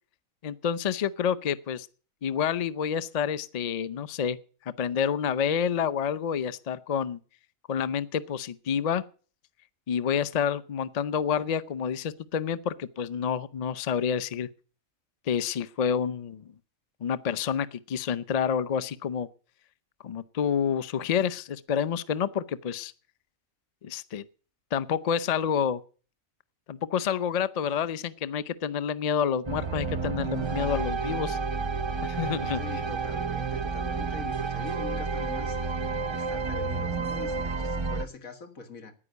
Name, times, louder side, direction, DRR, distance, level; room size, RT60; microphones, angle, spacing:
voice 1, 0.4-1.9 2.2-4.4 4.6-7.2 7.7-9.0 9.9-14.5 15.3-16.5 17.0-19.3 20.0-22.9 23.8-24.3 24.7-25.8 26.7-31.4 32.0-32.6, left 7 dB, 45° left, 0.5 m, -28 dB
sound 1, 29.5-38.1, right 4 dB, 30° right, 0.5 m, -30 dB
voice 2, 32.5-35.8 36.1-39.0, left 5 dB, 90° left, 2.3 m, -43 dB
9.9 x 9.9 x 8.1 m
omnidirectional pair, 1.4 m